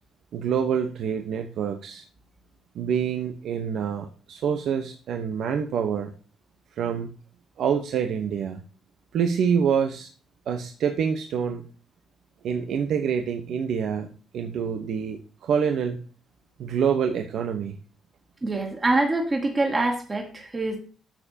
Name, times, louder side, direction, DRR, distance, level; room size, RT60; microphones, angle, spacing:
voice 1, 0.3-2.0 2.7-6.1 6.7-7.1 7.6-8.6 9.1-10.1 10.5-11.7 12.4-16.0 16.6-17.7, right 7 dB, 70° right, 5 dB, 1.0 m, -26 dB
voice 2, 18.4-20.8, right 2 dB, 25° right, 1 dB, 2.3 m, -25 dB
11.5 x 6.9 x 2.9 m, 0.39 s
cardioid pair, 90°, 0 cm